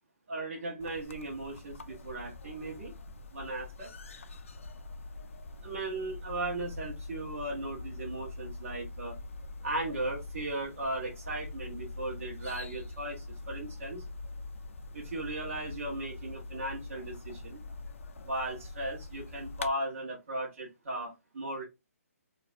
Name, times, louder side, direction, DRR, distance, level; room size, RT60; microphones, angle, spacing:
voice 1, 0.3-2.9 3.3-3.9 5.6-9.2 9.6-14.0 14.9-17.6 18.2-21.6, right 2 dB, 55° right, 1.1 m, -37 dB
sound 1, 0.8-19.7, left 3 dB, 55° left, 0.3 m, -44 dB
2.5 x 2.2 x 2.5 m
hypercardioid pair, 175°, 8 cm